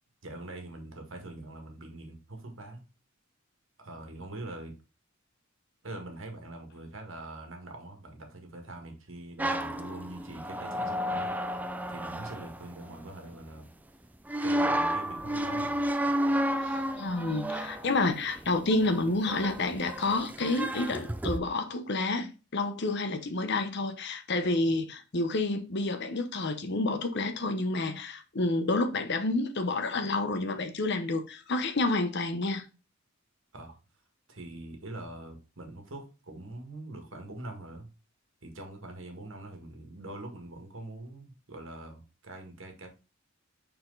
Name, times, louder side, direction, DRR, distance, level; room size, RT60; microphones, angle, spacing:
voice 1, 0.2-2.8 3.8-4.7 5.8-11.3 11.9-13.7 14.4-15.8 33.5-33.8 34.3-37.9 38.4-42.9, right 2 dB, 70° right, 1.8 m, -43 dB
sound 1, 9.4-13.4 14.3-21.4, equal, 10° right, 0.4 m, -32 dB
voice 2, 16.6-32.6, left 2 dB, 55° left, 0.9 m, -29 dB
5.9 x 4.3 x 3.9 m
head